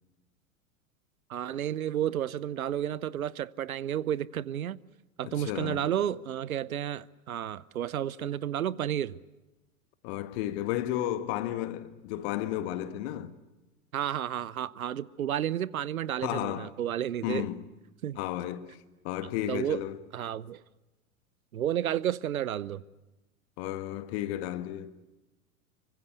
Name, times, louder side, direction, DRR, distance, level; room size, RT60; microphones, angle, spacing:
voice 1, 1.3-4.8 5.2-9.2 13.9-17.5 18.0-18.2 19.5-19.8 20.1-20.6 21.5-22.8, right 10 dB, 70° right, 0.9 m, -31 dB
voice 2, 5.2-5.9 10.0-13.3 16.2-16.7 17.2-17.6 18.1-20.0 23.6-25.0, left 13 dB, 45° left, 1.8 m, -33 dB
26.0 x 24.5 x 8.2 m
figure-of-eight pair, 90°, 43 cm